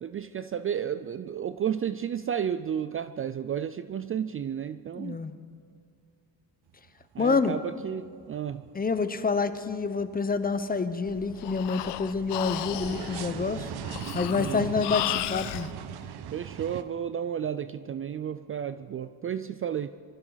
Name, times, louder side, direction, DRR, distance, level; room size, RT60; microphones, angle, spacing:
voice 1, 0.0-5.2 7.1-8.6 14.3-14.7 16.3-19.9, right 8 dB, 35° right, 13 dB, 0.4 m, -32 dB
voice 2, 5.0-5.4 7.2-7.6 8.7-13.7 14.1-15.7, left 4 dB, 20° left, 11 dB, 0.8 m, -28 dB
sound 1, 6.7-7.3 7.6-16.8, right 9 dB, 70° right, 1.0 m, -41 dB
Breathing, 11.1-15.7, left 15 dB, 75° left, 0.7 m, -34 dB
24.0 x 15.0 x 4.0 m, 2.2 s
cardioid pair, 110°, 41 cm